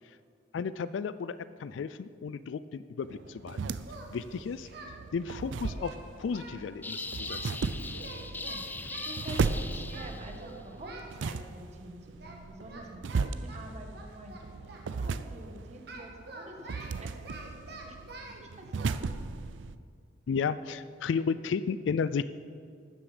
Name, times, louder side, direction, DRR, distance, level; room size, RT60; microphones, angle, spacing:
voice 1, 0.5-3.7 4.1-4.7 5.1-7.6 20.3-22.2, left 5 dB, 80° left, 15 dB, 0.3 m, -33 dB
sound 1, 3.0-19.7, right 4 dB, 80° right, 0.4 m, -36 dB
voice 2, 3.9-4.3 8.2-17.4 17.8-18.0 18.2-19.3, right 1 dB, 40° right, 3 dB, 1.4 m, -48 dB
Singing, 3.9-4.9 5.3-7.4 7.9-9.2 9.9-10.1 10.4-11.1 12.2-12.4 12.7-14.9 15.9-18.4 18.7-18.9, right 2 dB, 60° right, 1.6 m, -47 dB
sound 2, 6.8-10.5, left 3 dB, 10° left, 0.4 m, -40 dB
12.5 x 9.2 x 5.0 m, 2.2 s
head